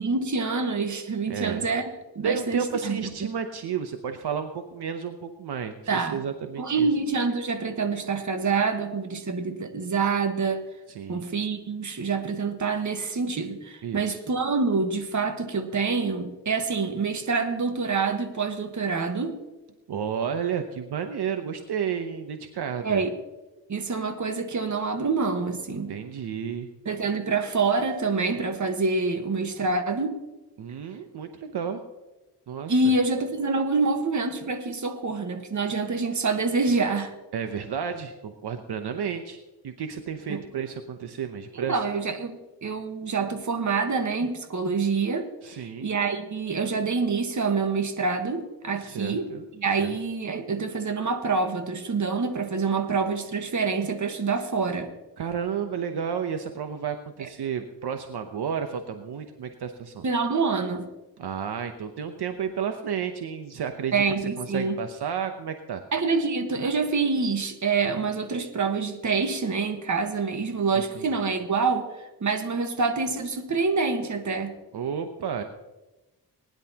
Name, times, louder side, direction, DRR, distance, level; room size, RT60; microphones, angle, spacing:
voice 1, 0.0-1.9 2.1-3.3 5.9-6.2 6.6-10.6 11.1-19.4 22.8-23.1 23.7-25.9 26.8-30.2 32.7-37.1 40.3-40.4 41.5-49.3 49.6-54.9 60.0-60.9 63.9-64.8 65.9-71.9 72.2-74.5, right 4 dB, 45° right, 6 dB, 1.5 m, -26 dB
voice 2, 1.3-1.7 2.2-6.9 10.9-11.2 13.8-14.2 19.9-23.0 25.9-26.7 30.6-31.8 32.5-32.9 37.3-41.7 45.4-45.9 48.8-49.4 49.8-50.0 55.2-60.0 61.2-65.8 70.7-71.1 74.7-75.4, right 7 dB, 70° right, 7 dB, 0.9 m, -32 dB
20.0 x 10.5 x 2.9 m, 1.1 s
cardioid pair, 100°, 40 cm